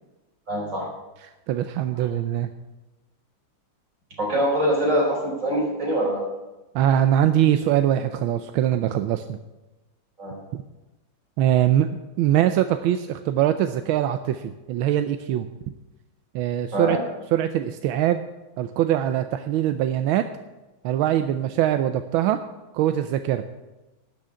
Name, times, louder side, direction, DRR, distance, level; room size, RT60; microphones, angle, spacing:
voice 1, 0.5-0.9 2.0-2.1 4.2-6.2 10.2-10.4 16.7-17.0, equal, 40° right, -3 dB, 5.0 m, -24 dB
voice 2, 1.5-2.5 6.7-9.4 10.5-10.6 11.4-11.9 12.2-15.5 16.3-17.0 17.3-18.2 18.6-20.3 20.8-22.4 22.7-23.4, right 11 dB, 85° right, 9 dB, 1.4 m, -22 dB
12.0 x 6.4 x 8.5 m, 1.1 s
omnidirectional pair, 2.2 m